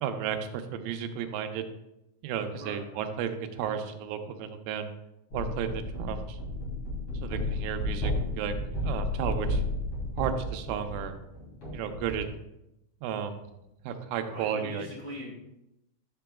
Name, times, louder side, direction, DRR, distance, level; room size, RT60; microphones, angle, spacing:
voice 1, 0.0-1.6 2.2-4.9 5.3-6.4 7.2-8.5 8.8-9.6 10.2-11.1 11.7-12.3 13.0-13.4 13.8-14.9, right 8 dB, 85° right, 7 dB, 3.1 m, -33 dB
voice 2, 2.5-2.9 14.3-15.3, left 1 dB, 80° left, -5 dB, 1.3 m, -41 dB
sound 1, 5.3-12.3, left 1 dB, 40° left, 2.4 m, -33 dB
10.5 x 6.8 x 2.3 m, 0.86 s
omnidirectional pair, 5.5 m